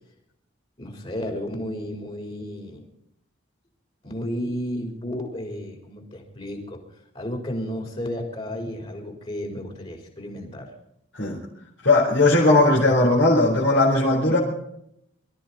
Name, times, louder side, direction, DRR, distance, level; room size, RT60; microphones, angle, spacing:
voice 1, 0.8-2.8 4.0-6.8 7.1-10.7, equal, 30° left, 2 dB, 4.0 m, -32 dB
voice 2, 11.8-14.4, left 2 dB, 65° left, -4 dB, 4.0 m, -18 dB
24.0 x 13.5 x 4.1 m, 0.76 s
head